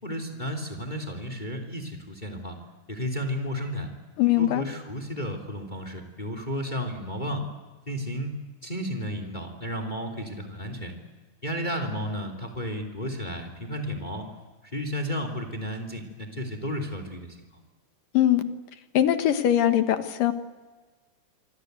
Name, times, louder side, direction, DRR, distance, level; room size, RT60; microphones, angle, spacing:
voice 1, 0.0-2.6 2.9-3.9 4.4-7.4 7.9-8.4 8.6-10.9 11.4-14.3 14.7-17.4, equal, 15° left, 6 dB, 3.0 m, -33 dB
voice 2, 4.2-4.6 18.1-18.4 18.9-20.3, left 12 dB, 85° left, 9 dB, 3.2 m, -21 dB
27.0 x 25.5 x 8.2 m, 1.3 s
omnidirectional pair, 3.8 m